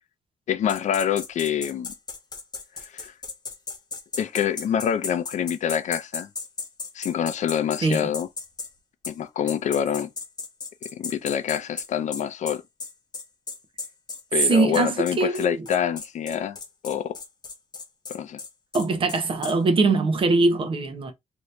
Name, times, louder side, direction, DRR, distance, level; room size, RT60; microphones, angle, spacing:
voice 1, 0.5-1.9 2.9-3.1 4.2-6.3 6.9-8.3 9.1-10.1 10.9-12.6 14.3-16.6 16.8-17.2 18.1-18.4, left 9 dB, 80° left, 0.5 m, -26 dB
sound 1, 0.7-8.7 9.0-9.2 9.5-19.5, left 4 dB, 35° left, 0.7 m, -35 dB
voice 2, 7.8-8.1 14.5-15.6 18.7-21.1, right 3 dB, 45° right, 0.7 m, -22 dB
2.8 x 2.7 x 3.2 m
wide cardioid pair, 165°, 12 cm